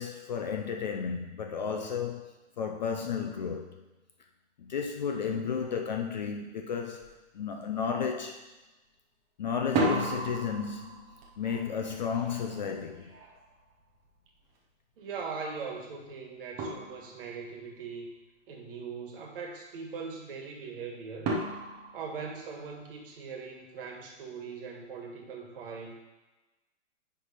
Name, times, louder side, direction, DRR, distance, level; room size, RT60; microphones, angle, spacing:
voice 1, 0.0-3.8 4.6-8.4 9.4-13.1, left 6 dB, 35° left, 0.4 m, -33 dB
sound 1, 7.0-7.2 7.5-8.1 9.5-14.4 16.0-16.1 16.6-17.5 21.2-23.0, right 2 dB, 15° right, 0.6 m, -35 dB
voice 2, 15.0-18.1 18.5-21.5 21.9-25.9, right 5 dB, 45° right, 1.5 m, -40 dB
9.8 x 3.4 x 4.8 m
hypercardioid pair, 150°, 39 cm